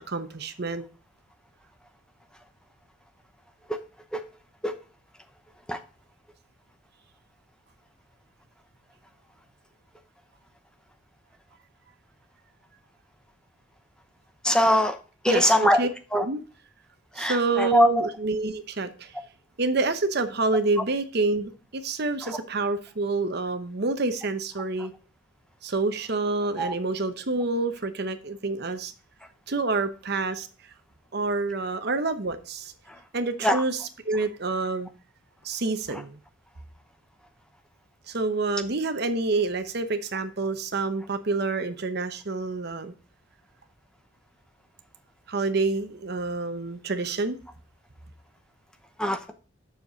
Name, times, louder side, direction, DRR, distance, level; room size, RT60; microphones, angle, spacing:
voice 1, 0.1-0.8 15.3-15.9 16.2-16.4 17.1-19.1 19.6-24.9 25.6-28.9 29.5-30.5 31.1-32.7 33.1-34.9 35.4-36.2 38.1-42.9 45.3-47.4, right 3 dB, 55° right, 10 dB, 0.8 m, -28 dB
voice 2, 14.4-14.9 15.2-15.8 16.1-16.2 17.2-18.1 26.6-26.7 33.4-33.6 49.0-49.3, left 1 dB, 5° left, 6 dB, 0.8 m, -21 dB
7.6 x 6.7 x 4.0 m, 0.37 s
head